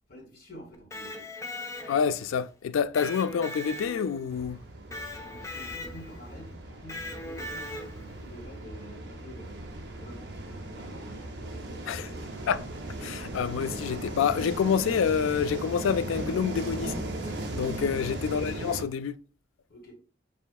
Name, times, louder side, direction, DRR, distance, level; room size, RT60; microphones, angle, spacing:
voice 1, 0.1-1.2 5.1-11.2 11.5-12.3 17.8-18.1 19.7-19.9, equal, 50° left, 1.7 m, -49 dB
Electric guitar, 0.7-2.3 3.0-4.3 4.9-6.2 6.9-8.1, left 1 dB, 15° left, 0.4 m, -39 dB
voice 2, 1.9-4.6 11.9-12.1 12.5-12.6 13.0-16.9 17.5-19.2, left 7 dB, 90° left, 0.3 m, -27 dB
sound 1, 4.3-18.8, right 1 dB, 60° right, 0.7 m, -37 dB
6.8 x 2.7 x 2.3 m
head